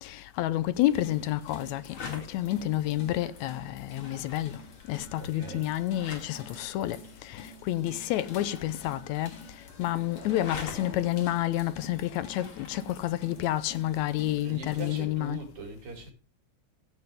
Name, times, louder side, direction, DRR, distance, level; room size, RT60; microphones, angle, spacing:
voice 1, 0.0-4.5 4.9-9.4 9.8-15.4, left 14 dB, 80° left, 1.9 m, -29 dB
sound 1, 0.6-14.4, left 4 dB, 45° left, 2.9 m, -48 dB
sound 2, 0.7-15.0, left 3 dB, 65° left, 3.6 m, -49 dB
voice 2, 5.2-5.7 14.4-16.1, right 3 dB, 75° right, 4.0 m, -41 dB
15.5 x 7.7 x 3.5 m
omnidirectional pair, 3.3 m